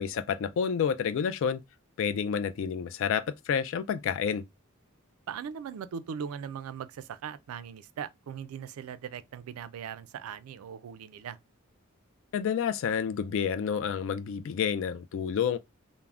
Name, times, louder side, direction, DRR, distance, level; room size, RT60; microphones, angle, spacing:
voice 1, 0.0-1.6 2.0-4.4 12.3-15.6, left 7 dB, 65° left, 0.3 m, -29 dB
voice 2, 5.3-11.4, right 7 dB, 90° right, 0.3 m, -39 dB
3.3 x 2.0 x 2.3 m
head